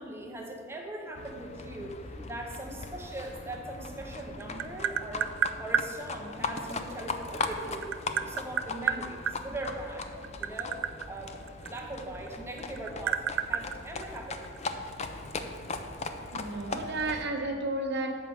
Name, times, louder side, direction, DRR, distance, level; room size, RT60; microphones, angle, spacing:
voice 1, 0.0-10.1 10.4-11.4 11.6-14.7, right 1 dB, 15° right, 1 dB, 0.7 m, -40 dB
Livestock farm animals working animals, 1.1-17.3, left 3 dB, 35° left, 0.5 m, -39 dB
Tap, 4.0-5.9 7.2-9.4 10.1-12.3 12.6-14.6, right 9 dB, 75° right, 0.3 m, -30 dB
voice 2, 16.3-18.2, right 2 dB, 60° right, 2 dB, 1.0 m, -32 dB
7.3 x 4.5 x 6.9 m, 2.4 s
head